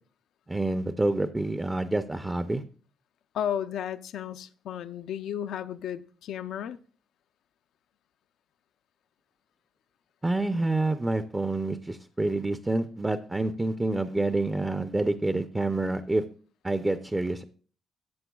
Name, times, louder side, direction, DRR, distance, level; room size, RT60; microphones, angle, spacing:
voice 1, 0.5-2.6 10.2-16.2 16.6-17.4, right 2 dB, 15° right, 0.5 m, -27 dB
voice 2, 3.3-6.8, left 9 dB, 75° left, 0.5 m, -33 dB
14.0 x 7.9 x 2.3 m
cardioid pair, 90°, 0 cm